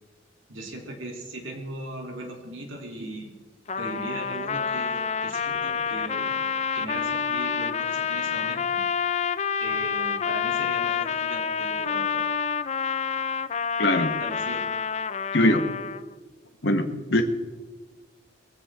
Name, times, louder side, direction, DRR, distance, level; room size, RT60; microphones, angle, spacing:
voice 1, 0.5-3.3 3.8-6.4 6.7-8.8 9.6-12.2 14.2-14.7, right 1 dB, 80° right, 1 dB, 3.2 m, -38 dB
Trumpet, 3.7-16.1, left 6 dB, 35° left, 0.4 m, -28 dB
voice 2, 13.8-14.1 15.3-15.7 16.6-17.2, left 1 dB, 60° left, 7 dB, 1.4 m, -21 dB
22.0 x 15.0 x 3.7 m, 1.3 s
head